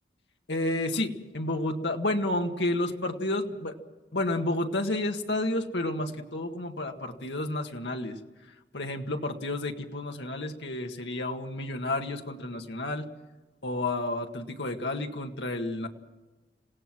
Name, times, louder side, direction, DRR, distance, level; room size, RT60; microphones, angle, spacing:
voice 1, 0.5-3.8 4.1-8.2 8.7-13.1 13.6-15.9, left 2 dB, 80° left, 4 dB, 1.8 m, -30 dB
27.5 x 17.0 x 6.1 m, 1.2 s
head